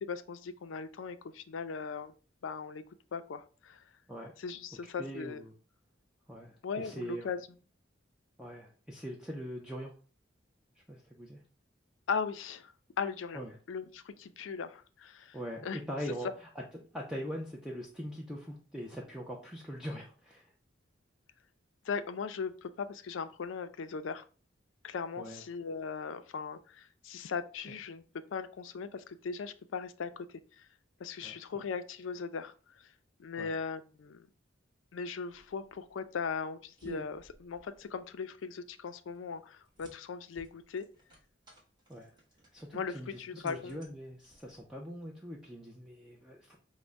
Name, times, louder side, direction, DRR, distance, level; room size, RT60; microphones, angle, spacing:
voice 1, 0.0-2.1 2.4-2.8 3.1-3.8 4.4-5.4 6.6-7.4 12.1-12.7 13.0-13.4 13.7-15.4 15.6-15.8 21.8-24.2 24.8-28.0 28.3-30.3 30.6-30.7 31.0-32.5 33.2-34.3 34.9-40.8 42.7-43.8, left 5 dB, 85° left, 10 dB, 0.4 m, -38 dB
voice 2, 4.1-4.4 4.7-5.5 6.3-7.3 8.4-9.9 10.7-11.4 13.3-13.6 15.3-16.5 16.9-20.5 25.2-25.4 31.2-31.4 33.4-33.6 41.9-42.2 42.5-46.6, equal, 5° right, -2 dB, 0.4 m, -42 dB
sound 1, 35.3-44.8, right 2 dB, 25° right, 1.2 m, -55 dB
5.1 x 2.1 x 3.4 m, 0.38 s
head